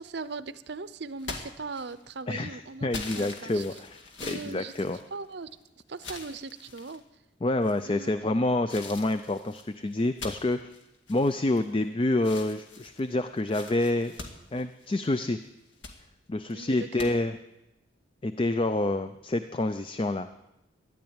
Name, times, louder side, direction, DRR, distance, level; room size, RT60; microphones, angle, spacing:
voice 1, 0.0-2.9 3.2-3.6 4.2-4.7 5.1-5.5 5.9-7.0 7.8-8.1 16.5-17.1, right 4 dB, 55° right, 14 dB, 0.7 m, -39 dB
sound 1, 1.2-2.2 2.9-5.5 6.0-7.0 7.6-8.1 8.7-11.9 12.2-15.2 15.6-16.0 17.0-17.1, left 4 dB, 65° left, 2.1 m, -43 dB
voice 2, 2.3-5.0 7.4-10.6 11.1-14.1 14.5-15.4 16.3-17.4 18.2-20.3, left 2 dB, 25° left, 10 dB, 0.4 m, -28 dB
13.5 x 10.5 x 8.8 m, 0.95 s
head